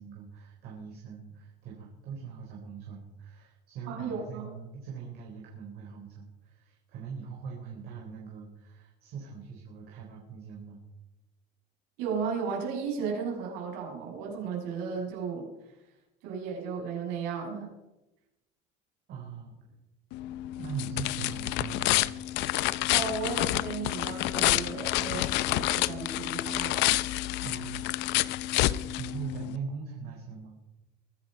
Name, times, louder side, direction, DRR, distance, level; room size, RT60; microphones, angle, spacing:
voice 1, 0.0-10.8 19.1-19.7 20.6-22.2 27.4-27.9 28.4-28.5 29.0-30.6, right 6 dB, 55° right, -2 dB, 4.0 m, -41 dB
voice 2, 3.9-4.4 12.0-15.5 16.2-17.7 22.9-27.0, right 5 dB, 80° right, -1 dB, 6.9 m, -34 dB
sound 1, 20.1-29.6, left 17 dB, 65° left, 0.6 m, -29 dB
23.0 x 10.0 x 5.4 m, 0.99 s
cardioid pair, 145°, 20 cm